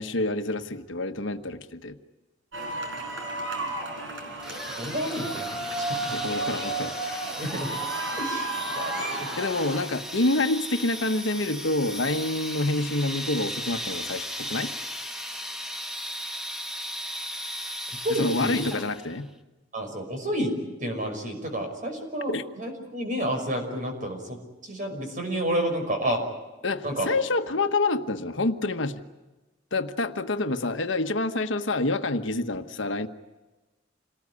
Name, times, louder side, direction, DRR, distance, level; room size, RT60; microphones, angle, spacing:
voice 1, 0.0-2.0 6.1-7.2 9.4-14.7 18.1-19.3 22.3-22.4 26.6-29.0 29.7-33.1, left 2 dB, 70° left, 8 dB, 1.3 m, -27 dB
sound 1, 2.5-9.8, right 2 dB, 75° right, 4.9 m, -32 dB
sound 2, 4.4-19.2, equal, 5° right, 1.4 m, -36 dB
voice 2, 4.8-6.0 7.4-7.7 8.2-8.5 8.7-9.4 18.0-18.6 19.7-26.2 26.8-27.1, right 1 dB, 45° right, 4 dB, 5.8 m, -30 dB
27.5 x 19.0 x 9.8 m, 1.1 s
head